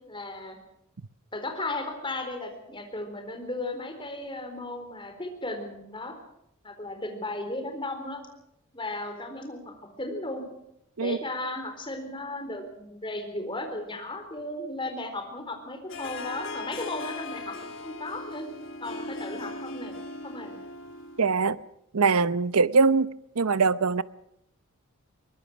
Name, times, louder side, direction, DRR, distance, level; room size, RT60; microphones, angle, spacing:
voice 1, 0.1-0.6 1.3-6.1 6.6-8.2 8.7-10.4 11.0-17.5 17.8-18.4 18.8-20.0 20.2-20.5, left 2 dB, 20° left, 4.1 m, -35 dB
Harp, 15.9-21.4, left 2 dB, 60° left, 2.7 m, -38 dB
voice 2, 21.2-21.6 21.9-23.1 23.4-24.0, right 4 dB, 85° right, 0.8 m, -22 dB
23.0 x 19.5 x 6.1 m
head